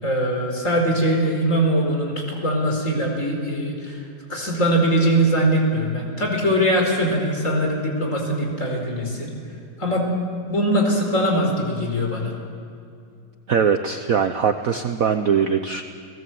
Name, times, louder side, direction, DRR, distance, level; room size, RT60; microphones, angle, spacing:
voice 1, 0.0-4.0 4.3-9.3 9.8-10.1 10.5-12.3, right 1 dB, 35° left, 1 dB, 4.8 m, -21 dB
voice 2, 13.5-15.8, right 7 dB, 55° right, 8 dB, 1.1 m, -21 dB
30.0 x 18.0 x 7.8 m, 2.5 s
omnidirectional pair, 2.3 m